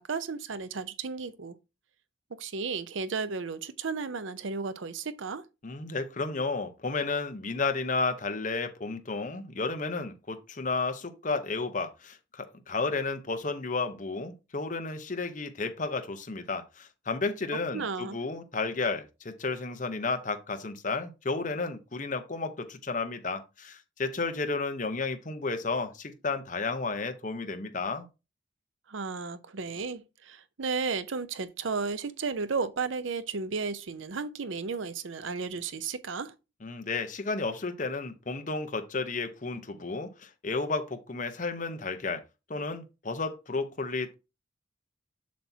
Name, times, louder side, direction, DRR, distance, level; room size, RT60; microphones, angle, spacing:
voice 1, 0.0-1.6 2.3-5.4 17.7-18.2 28.9-36.3, right 4 dB, 80° right, 0.6 m, -34 dB
voice 2, 5.6-28.1 36.6-42.2 42.5-44.1, left 3 dB, 40° left, 0.9 m, -32 dB
7.4 x 5.9 x 2.8 m
head